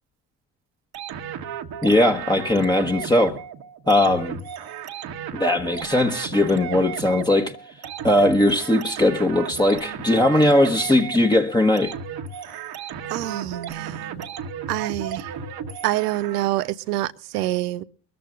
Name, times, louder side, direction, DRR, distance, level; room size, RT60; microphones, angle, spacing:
sound 1, 0.9-16.7, right 7 dB, 50° right, 1.5 m, -34 dB
voice 1, 1.8-3.4 3.9-4.4 5.3-7.6 8.0-11.9, left 1 dB, 10° left, 1.3 m, -19 dB
voice 2, 13.1-14.3 14.7-15.3 15.8-17.8, right 15 dB, 75° right, 0.8 m, -26 dB
24.0 x 14.0 x 2.5 m
figure-of-eight pair, 50°, 48 cm